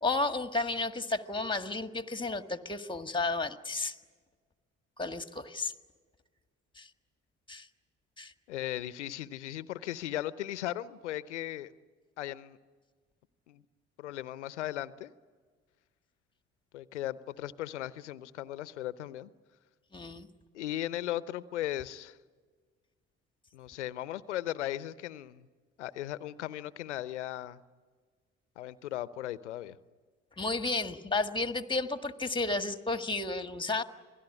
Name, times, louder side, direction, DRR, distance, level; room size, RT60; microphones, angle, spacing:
voice 1, 0.0-3.9 5.0-5.7 6.8-6.9 7.5-7.7 8.2-8.3 19.9-20.3 30.4-33.8, left 3 dB, 15° left, 9 dB, 1.7 m, -32 dB
voice 2, 8.5-11.7 12.2-12.6 13.5-13.6 14.0-15.1 16.7-19.3 20.5-22.2 23.5-25.5 25.8-27.6 28.6-29.8, left 13 dB, 85° left, 17 dB, 0.8 m, -37 dB
27.5 x 18.0 x 10.0 m, 1.5 s
hypercardioid pair, 50°, 35 cm